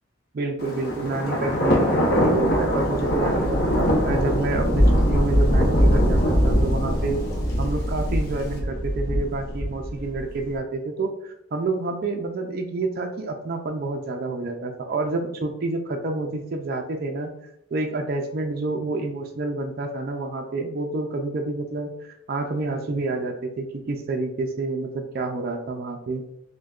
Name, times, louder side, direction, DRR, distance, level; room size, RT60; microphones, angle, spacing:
voice 1, 0.3-3.6 4.0-7.2 7.6-17.3 17.7-26.2, right 3 dB, 45° right, 3 dB, 0.3 m, -28 dB
Thunder, 0.6-10.4, equal, 50° left, 0.7 m, -22 dB
6.2 x 2.2 x 2.3 m, 0.84 s
head